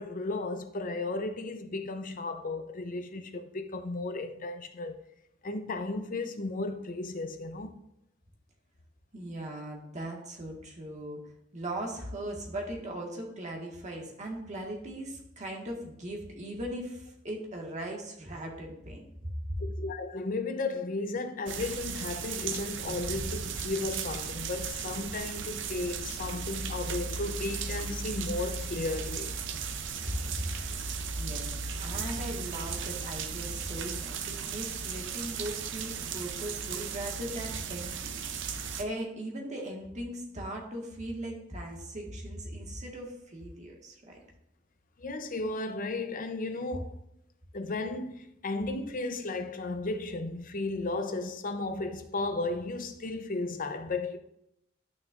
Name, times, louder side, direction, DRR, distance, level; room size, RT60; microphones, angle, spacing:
voice 1, 0.0-5.0 5.4-7.7 19.6-29.3 45.0-46.9 47.5-54.2, left 2 dB, 45° left, 0.7 m, -34 dB
voice 2, 9.1-11.2 11.5-19.1 30.3-30.5 31.1-38.4 38.8-44.1, right 1 dB, 35° right, 1.7 m, -39 dB
sound 1, 21.5-38.8, right 5 dB, 65° right, 0.6 m, -36 dB
11.0 x 6.3 x 2.5 m
head